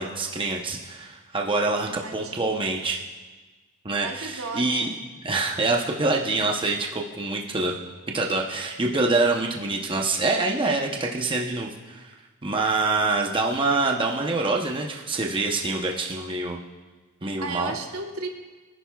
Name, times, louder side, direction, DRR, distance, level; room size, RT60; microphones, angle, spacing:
voice 1, 0.0-3.0 3.8-4.9 5.2-7.8 8.1-12.1 12.4-16.6 17.2-17.7, right 3 dB, 25° right, 0 dB, 0.8 m, -25 dB
voice 2, 1.6-2.7 4.0-5.0 17.4-18.3, right 3 dB, 65° right, 4 dB, 1.1 m, -35 dB
22.0 x 10.0 x 2.3 m, 1.3 s
head